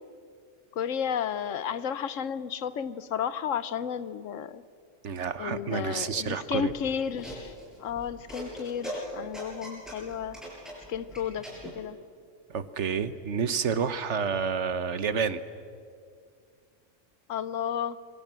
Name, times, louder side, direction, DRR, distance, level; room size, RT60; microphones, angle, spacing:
voice 1, 0.8-4.6 5.4-7.5 7.8-10.4 10.9-11.5 11.7-12.0 17.3-18.0, left 8 dB, 85° left, 15 dB, 1.2 m, -32 dB
voice 2, 5.0-6.7 12.5-15.4, right 6 dB, 65° right, 13 dB, 1.3 m, -29 dB
sound 1, 6.5-11.7, equal, ahead, 7.1 m, -40 dB
26.5 x 23.5 x 7.5 m, 2.2 s
omnidirectional pair, 1.3 m